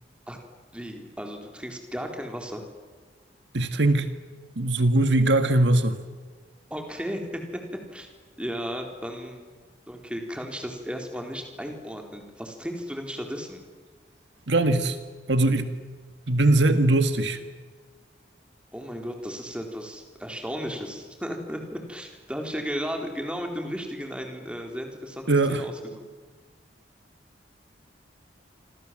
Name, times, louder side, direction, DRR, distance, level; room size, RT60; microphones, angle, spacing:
voice 1, 0.7-2.7 6.7-7.4 7.9-8.1 8.4-9.5 9.9-13.6 18.7-26.0, equal, 5° right, 3 dB, 4.0 m, -35 dB
voice 2, 3.5-4.1 4.6-6.0 14.5-15.0 15.3-15.8 16.3-17.4 25.3-25.6, right 2 dB, 75° right, 9 dB, 1.8 m, -21 dB
27.0 x 27.0 x 7.7 m, 1.4 s
head